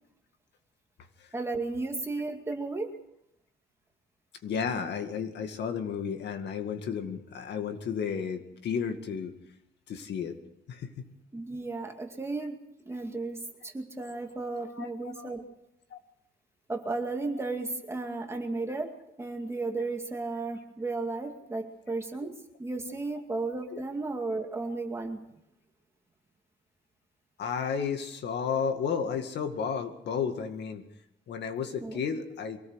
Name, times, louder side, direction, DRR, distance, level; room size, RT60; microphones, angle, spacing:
voice 1, 1.3-2.9 11.3-12.6 12.9-15.4 16.7-18.9 19.2-22.3 22.6-25.2 31.8-32.0, right 3 dB, 15° right, 3 dB, 2.3 m, -34 dB
voice 2, 4.4-9.3 9.9-10.4 10.7-10.9 14.8-14.9 15.2-15.3 15.9-16.0 23.7-23.8 27.4-30.8 31.3-32.6, left 6 dB, 60° left, 7 dB, 2.1 m, -32 dB
24.0 x 18.0 x 6.5 m, 0.81 s
cardioid pair, 160°, 20 cm